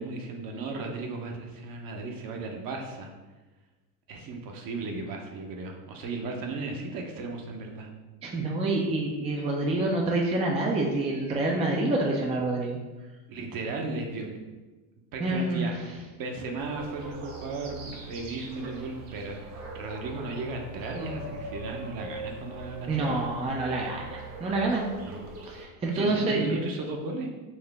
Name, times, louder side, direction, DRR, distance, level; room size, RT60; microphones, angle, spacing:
voice 1, 0.0-3.1 4.1-7.9 13.3-14.4 15.1-19.4 19.7-23.3 25.1-25.3 25.9-27.3, right 3 dB, 50° right, 2 dB, 0.9 m, -35 dB
voice 2, 8.2-12.8 15.2-15.7 22.9-24.9 25.5-26.6, right 2 dB, 15° right, 0 dB, 0.5 m, -27 dB
sound 1, 16.5-25.7, right 2 dB, 80° right, 1.0 m, -41 dB
4.5 x 2.8 x 3.4 m, 1.2 s
hypercardioid pair, 90°, 45 cm